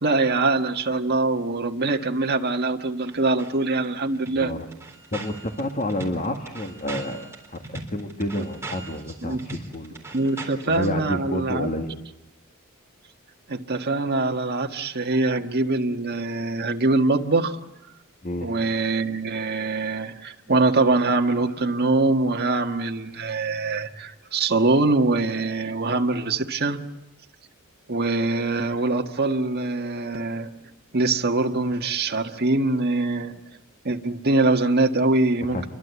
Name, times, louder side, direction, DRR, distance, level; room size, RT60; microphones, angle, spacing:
voice 1, 0.0-4.5 8.4-8.5 9.2-9.4 10.1-11.7 13.5-17.6 18.4-26.8 27.9-30.5 30.9-33.4 33.9-35.7, right 2 dB, 50° right, 3 dB, 1.7 m, -23 dB
sound 1, 3.1-3.5 3.8-3.9 4.1-10.9, right 2 dB, 15° right, 3.9 m, -38 dB
voice 2, 4.3-4.7 5.1-7.3 7.7-10.0 10.7-11.9 18.2-18.5 35.5-35.7, left 1 dB, 40° left, 4 dB, 2.0 m, -29 dB
28.5 x 24.0 x 8.3 m, 0.98 s
head